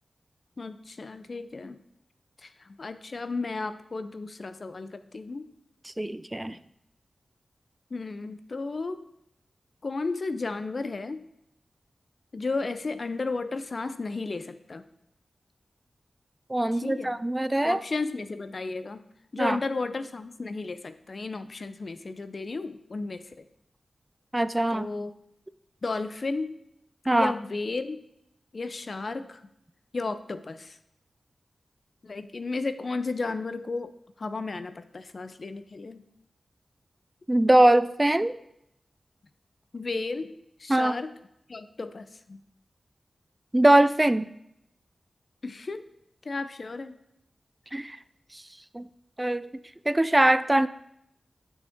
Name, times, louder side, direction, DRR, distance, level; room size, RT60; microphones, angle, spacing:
voice 1, 0.6-1.8 2.4-5.5 7.9-9.1 9.8-11.2 12.3-14.8 16.7-17.1 17.6-19.0 19.3-23.4 24.7-25.1 25.8-26.5 27.1-28.0 28.5-29.4 29.9-30.8 32.0-33.9 34.2-36.0 39.7-41.1 41.5-42.4 45.4-45.9 46.2-47.0, left 3 dB, 55° left, 11 dB, 0.5 m, -33 dB
voice 2, 6.0-6.6 16.5-17.8 19.4-19.6 24.3-24.9 27.1-27.3 37.3-38.3 40.7-40.9 43.5-44.3 47.7-48.0 48.7-48.8 49.2-49.5 49.9-50.7, right 1 dB, 20° right, 13 dB, 0.3 m, -22 dB
9.8 x 6.4 x 3.6 m, 0.80 s
wide cardioid pair, 65°, 0 cm